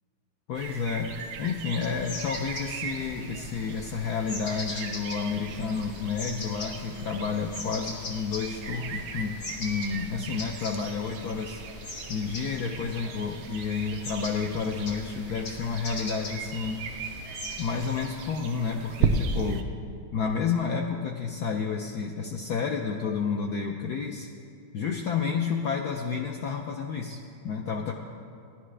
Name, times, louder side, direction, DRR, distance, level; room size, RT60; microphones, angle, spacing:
voice 1, 0.5-11.6 12.1-16.8 17.6-19.7 20.1-24.3 24.7-27.9, left 5 dB, 85° left, 1 dB, 0.8 m, -30 dB
sound 1, 0.6-19.6, right 5 dB, 80° right, 1.5 m, -37 dB
sound 2, 1.9-18.3, left 2 dB, 50° left, 1.7 m, -42 dB
16.0 x 11.0 x 3.3 m, 2.5 s
omnidirectional pair, 2.4 m